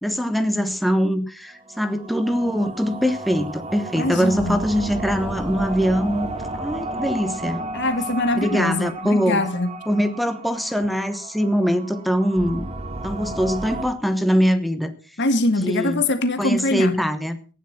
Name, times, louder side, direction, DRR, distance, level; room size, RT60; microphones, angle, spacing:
voice 1, 0.0-7.6 8.3-9.4 9.9-12.7 13.0-14.9 15.6-16.0 16.4-17.4, equal, ahead, 8 dB, 1.1 m, -22 dB
sound 1, 1.6-13.9, right 2 dB, 30° right, 1.5 m, -33 dB
voice 2, 4.0-4.6 7.7-9.7 15.2-17.0, left 2 dB, 55° left, 8 dB, 1.8 m, -23 dB
15.5 x 10.5 x 5.9 m, 0.38 s
head